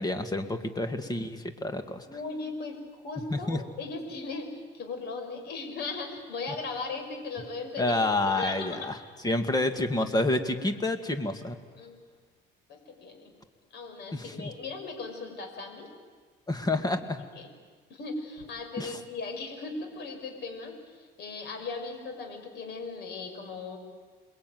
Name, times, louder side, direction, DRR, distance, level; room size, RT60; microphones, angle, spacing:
voice 1, 0.0-2.0 3.3-3.6 7.8-9.0 9.2-11.6 14.1-14.5 16.5-17.2 18.8-18.9, left 2 dB, 20° left, 8 dB, 2.2 m, -28 dB
voice 2, 2.0-8.1 8.4-8.8 11.8-11.9 12.7-13.3 13.7-15.9 17.4-17.5 17.9-23.8, left 3 dB, 60° left, 4 dB, 5.7 m, -38 dB
28.0 x 21.5 x 9.5 m, 1.5 s
cardioid pair, 125°, 20 cm